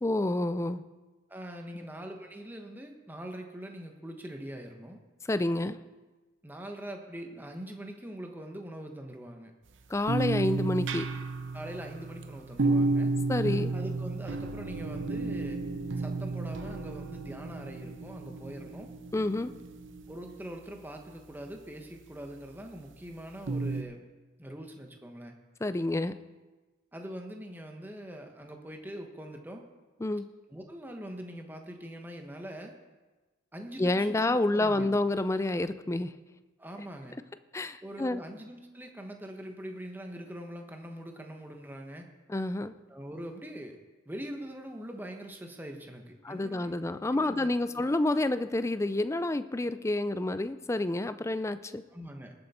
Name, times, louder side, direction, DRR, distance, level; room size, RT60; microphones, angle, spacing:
voice 1, 0.0-0.8 5.3-5.8 9.9-11.1 13.3-13.7 19.1-19.5 25.6-26.2 30.0-30.3 33.8-36.1 37.5-38.2 42.3-42.7 46.2-51.8, left 2 dB, 15° left, 13 dB, 0.3 m, -29 dB
voice 2, 1.3-5.0 6.4-9.5 11.5-13.1 13.7-15.6 16.0-18.9 20.1-24.0 24.4-25.4 26.9-29.6 30.5-32.7 33.5-34.9 36.6-37.1 37.8-42.1 42.9-43.8 44.0-46.8 47.1-47.8 51.9-52.3, equal, 10° right, 3 dB, 1.1 m, -43 dB
sound 1, 10.1-20.3 23.5-23.8, right 3 dB, 65° right, 0.7 m, -32 dB
19.5 x 7.8 x 4.3 m, 1.2 s
head